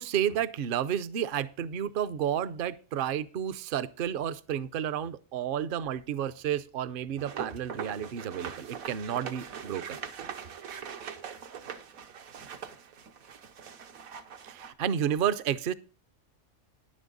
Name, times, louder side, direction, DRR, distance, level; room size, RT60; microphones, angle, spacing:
voice 1, 0.0-10.0 14.4-15.7, right 9 dB, 55° right, 15 dB, 0.6 m, -31 dB
sound 1, 7.2-14.7, right 7 dB, 80° right, 1.4 m, -42 dB
10.0 x 9.8 x 3.9 m, 0.35 s
omnidirectional pair, 1.5 m